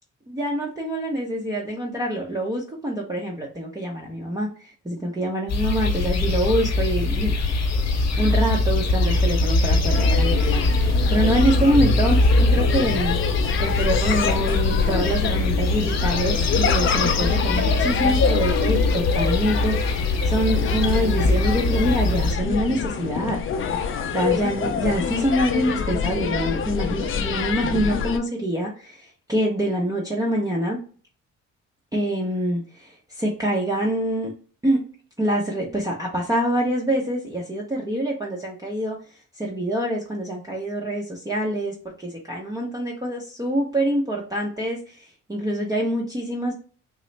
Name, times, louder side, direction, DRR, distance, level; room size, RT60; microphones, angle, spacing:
voice 1, 0.3-7.3 7.8-13.2 13.6-23.4 24.1-30.8 31.9-34.3 34.6-34.8 35.2-39.0 39.4-46.5, right 1 dB, 10° right, -2 dB, 0.7 m, -25 dB
sound 1, 5.5-22.3, left 2 dB, 60° left, 0.9 m, -22 dB
sound 2, 9.9-28.2, left 6 dB, 45° left, 0.5 m, -26 dB
3.8 x 2.0 x 3.2 m, 0.40 s
cardioid pair, 90°, 30 cm